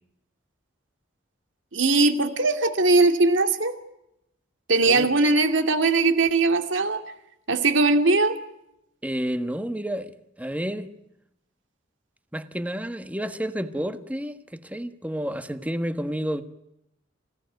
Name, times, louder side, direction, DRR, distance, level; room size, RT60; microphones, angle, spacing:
voice 1, 1.7-3.8 4.7-7.0 7.5-8.4, right 3 dB, 70° right, 2.4 m, -20 dB
voice 2, 9.0-10.1 10.4-10.9 12.3-16.4, equal, 10° right, 1.4 m, -30 dB
27.0 x 17.5 x 9.2 m
head